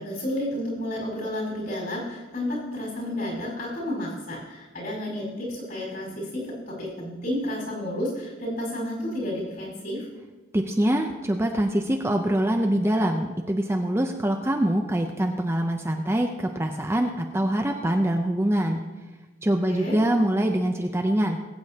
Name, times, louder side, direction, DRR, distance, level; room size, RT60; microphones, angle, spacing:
voice 1, 0.0-10.1 19.7-19.9, left 1 dB, 50° left, -3 dB, 4.6 m, -31 dB
voice 2, 10.5-18.8 19.4-21.4, right 1 dB, 15° right, 3 dB, 0.6 m, -24 dB
20.0 x 8.6 x 2.8 m, 1.2 s
head